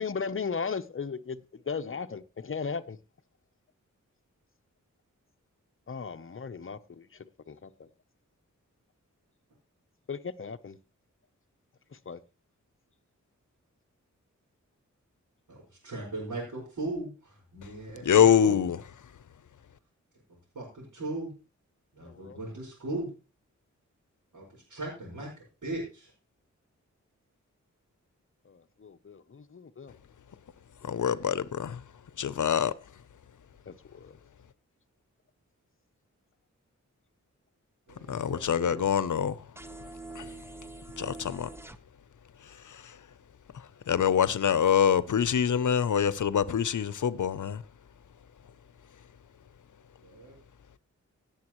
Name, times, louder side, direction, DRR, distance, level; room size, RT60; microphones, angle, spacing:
voice 1, 0.0-1.4 1.7-3.0 5.9-7.9 10.1-10.8 12.1-12.2 22.0-22.4 28.5-29.9 30.8-31.2 33.7-34.2, left 5 dB, 45° left, 0.8 m, -37 dB
voice 2, 15.5-18.6 20.5-21.3 21.9-23.1 24.3-26.1 37.9-38.9 50.0-50.4, right 2 dB, 85° right, 5.5 m, -38 dB
voice 3, 18.0-18.8 30.8-31.8 32.2-32.7 38.1-39.4 40.1-40.3 41.0-41.5 42.4-43.0 43.5-47.6, left 8 dB, 75° left, 0.7 m, -25 dB
sound 1, 39.6-41.8, right 2 dB, 10° right, 0.7 m, -44 dB
17.0 x 7.1 x 3.1 m
wide cardioid pair, 60°, 30 cm